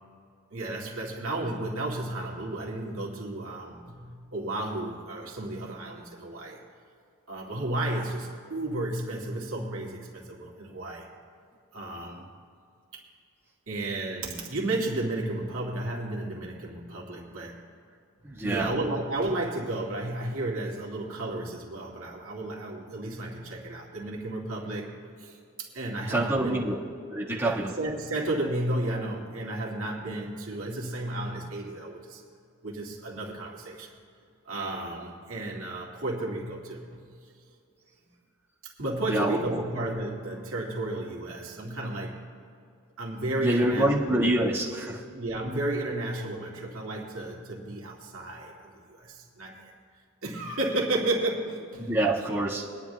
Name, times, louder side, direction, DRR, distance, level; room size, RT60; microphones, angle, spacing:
voice 1, 0.5-6.6 7.3-11.1 11.7-12.3 13.7-17.6 18.4-26.7 27.4-32.2 32.6-33.9 34.5-37.1 38.8-42.2 43.0-44.3 45.1-49.7 50.2-51.9, right 2 dB, 65° right, -2 dB, 2.3 m, -33 dB
voice 2, 18.2-18.7 26.1-26.8 27.1-27.7 39.1-39.4 43.4-45.0 51.9-52.6, right 1 dB, 10° right, -7 dB, 1.6 m, -26 dB
24.0 x 10.5 x 2.3 m, 2.4 s
head